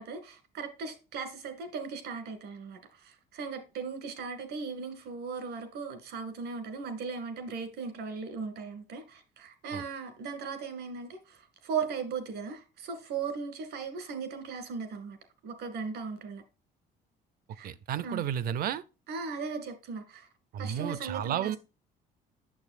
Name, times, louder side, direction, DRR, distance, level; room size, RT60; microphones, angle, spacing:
voice 1, 0.0-15.2 15.4-16.4 17.5-17.7 18.0-18.2 19.1-20.3 20.6-21.6, right 5 dB, 85° right, 2.1 m, -38 dB
voice 2, 17.6-18.8 20.5-21.6, right 10 dB, 60° right, 0.6 m, -32 dB
8.6 x 6.8 x 2.5 m
cardioid pair, 110°, 17 cm